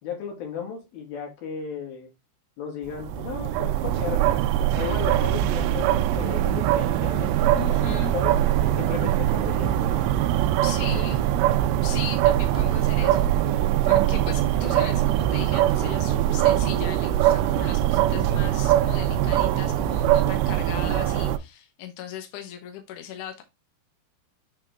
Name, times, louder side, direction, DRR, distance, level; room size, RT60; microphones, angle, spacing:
voice 1, 0.0-2.1 2.6-4.4 4.8-8.4 8.8-10.0 10.7-11.1, left 6 dB, 55° left, 3.7 m, -35 dB
sound 1, 2.9-21.4, right 12 dB, 80° right, 2.6 m, -22 dB
voice 2, 7.6-8.1 10.6-11.2 11.8-23.4, left 9 dB, 80° left, 1.8 m, -38 dB
8.9 x 3.7 x 3.5 m
omnidirectional pair, 5.5 m